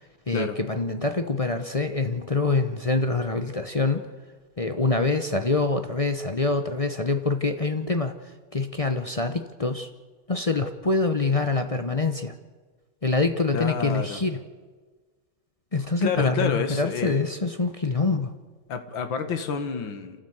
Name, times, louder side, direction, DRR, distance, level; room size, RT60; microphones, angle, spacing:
voice 1, 0.3-4.1 4.6-8.1 8.5-9.9 10.3-12.3 13.0-14.4 15.7-18.3, left 3 dB, 45° left, 7 dB, 0.4 m, -25 dB
voice 2, 13.5-14.2 16.0-17.2 18.7-20.2, left 6 dB, 75° left, 8 dB, 2.3 m, -29 dB
27.5 x 14.0 x 8.0 m, 1.4 s
omnidirectional pair, 2.1 m